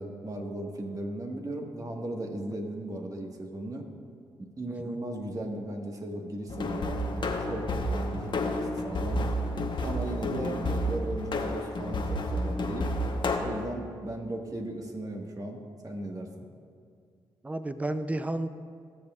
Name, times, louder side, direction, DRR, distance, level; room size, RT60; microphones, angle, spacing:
voice 1, 0.0-3.8 4.6-9.2 9.8-12.9 13.3-16.5, right 1 dB, 35° right, 2 dB, 1.5 m, -37 dB
sound 1, 6.5-13.4, left 1 dB, 50° left, 1.0 m, -30 dB
voice 2, 17.4-18.5, right 1 dB, 15° right, 11 dB, 0.5 m, -32 dB
18.0 x 7.0 x 2.4 m, 2.2 s
supercardioid pair, 50°, 10 cm